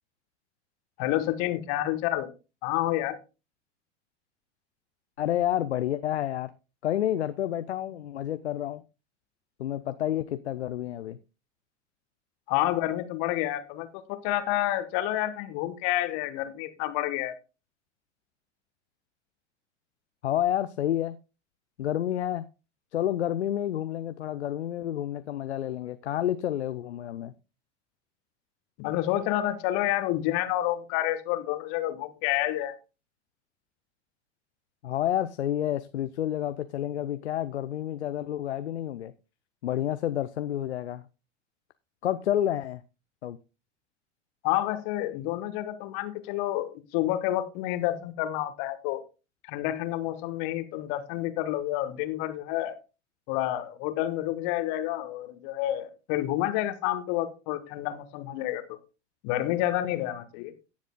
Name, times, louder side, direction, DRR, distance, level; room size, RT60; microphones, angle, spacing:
voice 1, 1.0-2.3 2.6-3.2 12.5-17.3 28.8-32.7 44.4-49.0 49.5-52.7 53.3-58.6 59.2-60.5, left 14 dB, 45° left, 1.3 m, -29 dB
voice 2, 5.2-6.5 6.8-8.8 9.6-11.2 20.2-21.2 21.8-22.5 22.9-27.3 34.8-39.1 39.6-41.0 42.0-42.8 43.2-43.4, left 11 dB, 65° left, 0.6 m, -29 dB
17.5 x 7.3 x 2.2 m
figure-of-eight pair, 85°, 35 cm